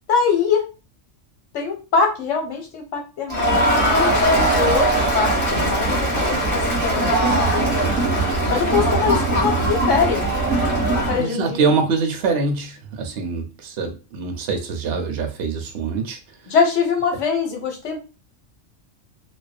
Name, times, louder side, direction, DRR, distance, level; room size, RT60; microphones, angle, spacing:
voice 1, 0.1-0.6 1.5-7.8 8.5-10.3 10.9-11.6 16.5-18.0, left 5 dB, 75° left, 2 dB, 1.1 m, -23 dB
Crowd, 3.3-11.2, right 1 dB, 10° right, 1.3 m, -20 dB
voice 2, 11.2-16.5, right 4 dB, 65° right, 4 dB, 0.7 m, -24 dB
2.5 x 2.3 x 2.3 m, 0.31 s
omnidirectional pair, 1.3 m